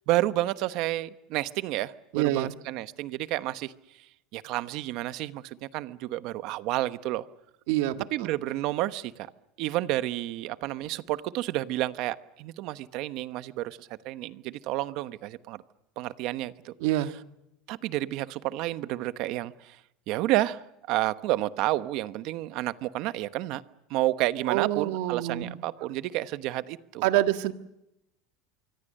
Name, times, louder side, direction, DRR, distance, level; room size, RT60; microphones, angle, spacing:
voice 1, 0.1-3.7 4.3-7.3 8.1-9.3 9.6-15.6 16.0-16.7 17.7-19.8 20.1-23.6 23.9-27.1, right 16 dB, 50° right, 13 dB, 1.0 m, -30 dB
voice 2, 2.1-2.5 7.7-8.3 16.8-17.1 24.5-25.6 27.0-27.5, right 14 dB, 65° right, 9 dB, 1.6 m, -26 dB
25.5 x 24.0 x 6.6 m, 0.85 s
supercardioid pair, 160°, 0 cm